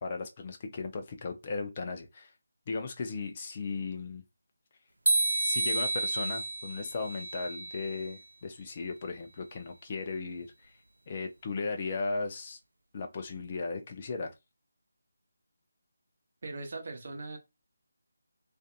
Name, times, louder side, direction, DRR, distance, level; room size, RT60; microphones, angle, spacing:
voice 1, 0.0-2.3 2.7-4.2 5.4-10.7 11.1-12.6 12.9-14.3, left 4 dB, 35° left, 0.5 m, -36 dB
sound 1, 5.1-8.1, right 2 dB, 75° right, 0.3 m, -30 dB
voice 2, 16.4-17.4, right 3 dB, 50° right, 0.8 m, -39 dB
2.5 x 2.5 x 2.3 m
figure-of-eight pair, 155°, 0 cm